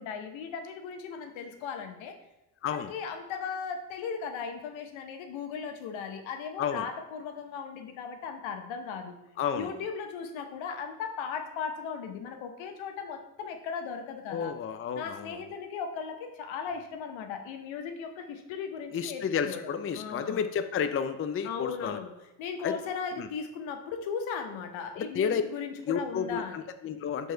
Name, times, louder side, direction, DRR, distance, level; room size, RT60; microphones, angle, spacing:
voice 1, 0.0-2.1 2.7-9.2 9.6-14.5 14.9-19.6 19.9-20.4 21.4-22.1 22.4-26.6, left 6 dB, 75° left, 6 dB, 1.0 m, -37 dB
voice 2, 2.6-2.9 6.6-6.9 9.4-9.7 14.3-15.4 18.9-22.0 22.6-22.8 23.2-23.3 25.0-25.4 25.9-27.3, left 7 dB, 30° left, 9 dB, 0.5 m, -31 dB
4.6 x 3.9 x 5.5 m, 0.94 s
supercardioid pair, 60°, 47 cm